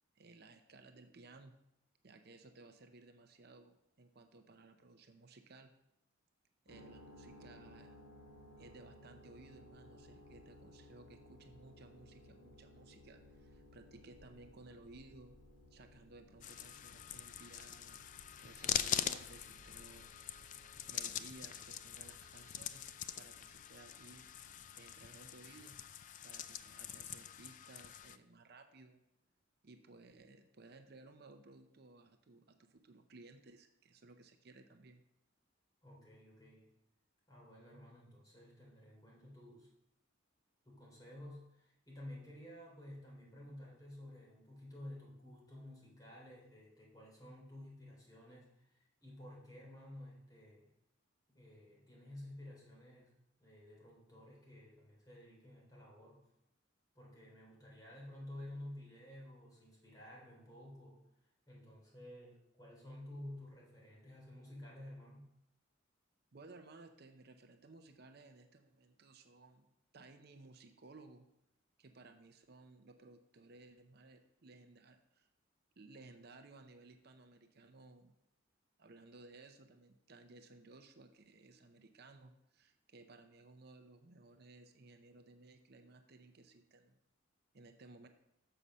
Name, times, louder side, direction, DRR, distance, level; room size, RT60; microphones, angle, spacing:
voice 1, 0.2-1.5 2.0-5.7 6.7-8.0 8.6-15.4 15.7-18.0 18.4-20.1 20.9-22.8 23.1-24.3 24.8-25.8 26.2-29.0 29.6-35.0 66.3-71.3 71.8-75.3 75.8-78.2 78.8-87.0 87.5-88.1, right 3 dB, 55° right, 7 dB, 0.6 m, -58 dB
sound 1, 6.7-25.0, left 1 dB, 75° left, 2.6 m, -60 dB
sound 2, 16.4-28.2, left 10 dB, 40° left, 0.3 m, -43 dB
voice 2, 35.8-36.7 37.3-39.7 40.6-50.7 51.3-53.1 53.4-56.2 56.9-61.0 61.5-65.3, left 1 dB, 20° left, -4 dB, 3.1 m, -52 dB
6.8 x 5.5 x 6.2 m, 0.82 s
head